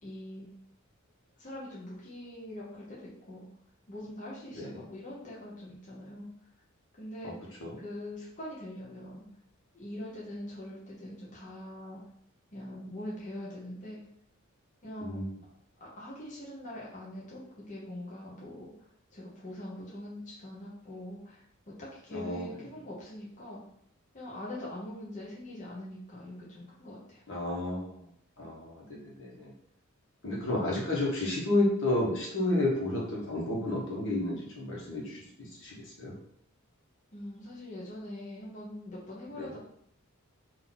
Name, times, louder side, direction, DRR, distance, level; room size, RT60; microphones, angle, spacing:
voice 1, 0.0-0.5 1.4-3.5 3.9-6.3 7.0-9.3 9.7-12.0 12.5-14.0 14.8-15.2 15.8-18.7 19.1-21.4 21.8-23.6 24.1-27.2 37.1-39.6, left 1 dB, 35° left, -6 dB, 1.1 m, -43 dB
voice 2, 22.1-22.5 27.3-28.0 28.4-29.5 30.2-36.2 39.4-39.5, left 1 dB, 65° left, -3 dB, 1.3 m, -31 dB
3.9 x 2.8 x 4.0 m, 0.68 s
head